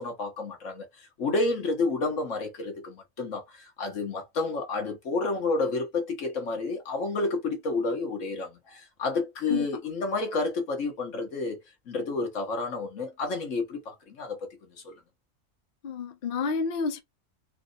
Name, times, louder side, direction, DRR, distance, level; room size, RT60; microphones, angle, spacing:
voice 1, 0.0-14.5 14.8-15.0, left 3 dB, 70° left, 1.6 m, -30 dB
voice 2, 15.8-17.0, left 5 dB, 55° left, 0.7 m, -29 dB
4.2 x 2.1 x 4.0 m
omnidirectional pair, 1.3 m